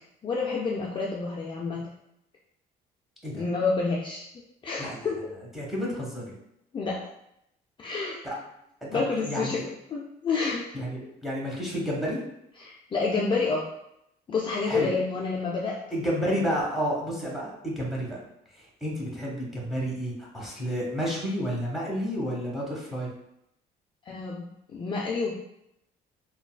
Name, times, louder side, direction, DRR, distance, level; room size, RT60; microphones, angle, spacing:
voice 1, 0.2-1.9 3.3-4.2 4.6-5.4 6.7-7.0 7.8-8.2 8.9-10.8 12.6-13.7 14.3-15.8 24.1-25.3, left 4 dB, 30° left, -3 dB, 0.4 m, -29 dB
voice 2, 5.5-6.3 8.2-8.4 8.8-9.6 10.7-12.2 14.7-14.9 15.9-18.2 18.8-23.1, equal, ahead, -4 dB, 1.0 m, -30 dB
3.6 x 2.3 x 2.3 m, 0.79 s
cardioid pair, 110°, 17 cm